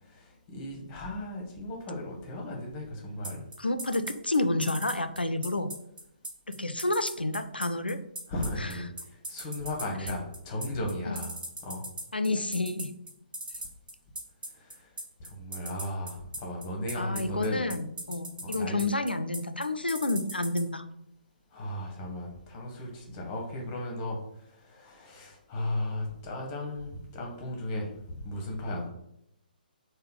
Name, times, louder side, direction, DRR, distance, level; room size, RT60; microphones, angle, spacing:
voice 1, 0.0-3.4 8.3-11.3 11.6-11.9 14.5-14.9 15.2-17.7 18.4-18.8 21.5-28.9, left 1 dB, 25° left, 0 dB, 0.8 m, -36 dB
sound 1, 3.2-20.6, right 1 dB, 60° right, 1.0 m, -37 dB
voice 2, 3.6-5.7 6.6-8.0 8.6-8.7 11.1-11.2 12.1-12.9 17.0-20.9, left 2 dB, 85° left, 9 dB, 0.3 m, -29 dB
3.2 x 2.1 x 3.9 m, 0.79 s
figure-of-eight pair, 135°, 5 cm